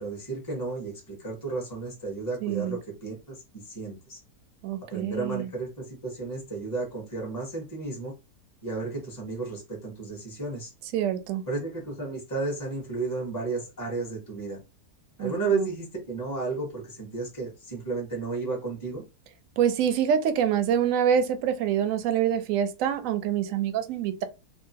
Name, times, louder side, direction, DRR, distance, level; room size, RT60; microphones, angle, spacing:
voice 1, 0.0-4.2 4.9-8.1 8.6-10.7 11.5-14.6 15.2-19.0, right 3 dB, 20° left, 0.7 m, -33 dB
voice 2, 2.4-2.8 4.6-5.5 10.9-11.4 15.2-15.6 19.6-24.2, right 9 dB, 70° right, 0.8 m, -26 dB
2.8 x 2.3 x 2.7 m
omnidirectional pair, 1.7 m